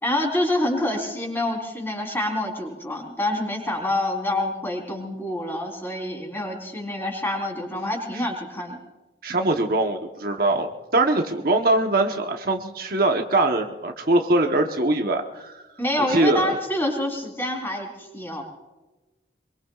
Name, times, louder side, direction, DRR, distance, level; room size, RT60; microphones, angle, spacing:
voice 1, 0.0-8.8 15.8-18.4, left 1 dB, 10° left, 0 dB, 3.9 m, -27 dB
voice 2, 9.2-15.6 16.1-16.6, right 2 dB, 50° right, 3 dB, 1.1 m, -22 dB
24.5 x 23.0 x 2.4 m, 1.1 s
head